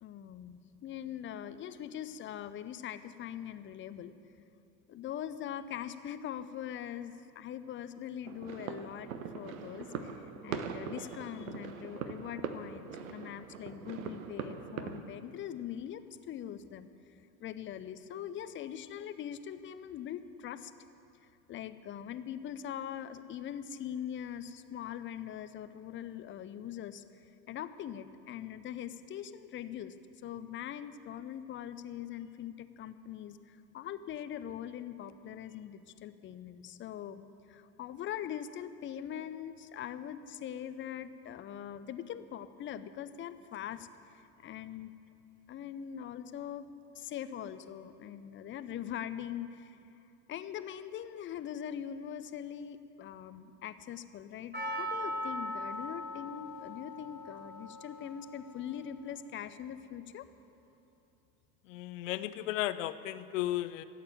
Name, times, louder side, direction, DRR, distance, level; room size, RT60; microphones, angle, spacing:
voice 1, 0.0-4.1 4.9-17.1 17.4-20.7 21.5-30.0 30.2-44.9 45.5-46.7 46.9-49.8 50.3-60.3, left 10 dB, 25° left, 13 dB, 0.7 m, -42 dB
sound 1, 8.2-15.0, right 6 dB, 65° right, 1.1 m, -41 dB
Percussion, 54.5-58.9 59.2-59.3, equal, 20° right, 3.9 m, -40 dB
voice 2, 61.7-63.8, left 14 dB, 60° left, 14 dB, 0.7 m, -34 dB
14.0 x 8.4 x 8.9 m, 2.6 s
figure-of-eight pair, 75°, 45 cm